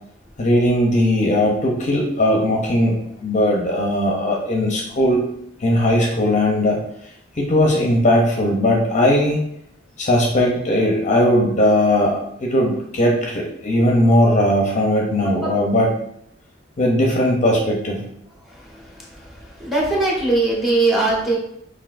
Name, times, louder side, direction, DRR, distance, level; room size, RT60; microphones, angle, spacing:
voice 1, 0.4-5.2 5.6-6.8 7.4-9.4 10.0-15.9 16.8-18.0, left 1 dB, 40° left, -1 dB, 0.6 m, -18 dB
voice 2, 19.6-21.4, right 2 dB, ahead, -3 dB, 1.0 m, -19 dB
5.6 x 2.6 x 2.5 m, 0.73 s
head